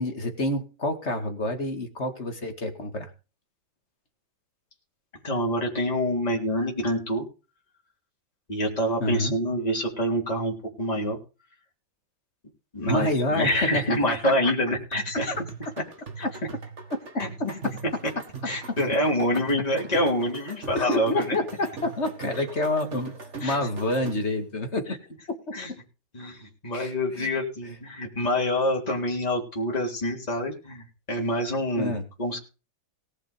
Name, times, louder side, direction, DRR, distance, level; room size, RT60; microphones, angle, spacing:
voice 1, 0.0-3.1 9.0-9.3 12.9-14.5 20.7-23.1 23.4-24.9 25.7-25.8 26.7-27.3 31.8-32.0, left 1 dB, 35° left, 5 dB, 2.4 m, -28 dB
voice 2, 5.2-7.2 8.5-11.2 12.7-15.3 16.2-16.3 17.2-17.5 18.4-21.4 22.4-22.5 23.4-23.6 25.5-25.7 26.1-32.4, equal, 20° left, -2 dB, 3.5 m, -26 dB
sound 1, 14.9-24.4, right 4 dB, 35° right, 2.1 m, -40 dB
19.0 x 6.5 x 5.1 m, 0.32 s
omnidirectional pair, 2.2 m